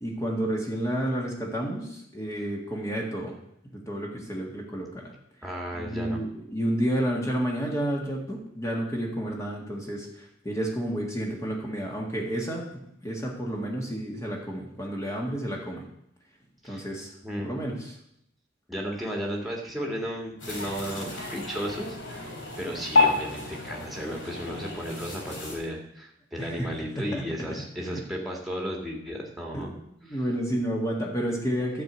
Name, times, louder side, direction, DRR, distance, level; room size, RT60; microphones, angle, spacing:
voice 1, 0.0-3.4 3.7-5.1 5.7-15.8 16.6-17.1 17.4-18.0 26.4-26.7 27.0-27.2 27.8-28.0 29.5-29.8 30.1-31.8, right 1 dB, 15° left, -1 dB, 1.6 m, -31 dB
voice 2, 5.4-6.2 16.6-16.8 17.2-17.5 18.7-22.3 22.6-29.7 30.1-30.2, equal, ahead, -1 dB, 2.0 m, -34 dB
sound 1, 20.4-25.6, left 3 dB, 70° left, 4.4 m, -29 dB
12.0 x 4.6 x 8.1 m, 0.76 s
head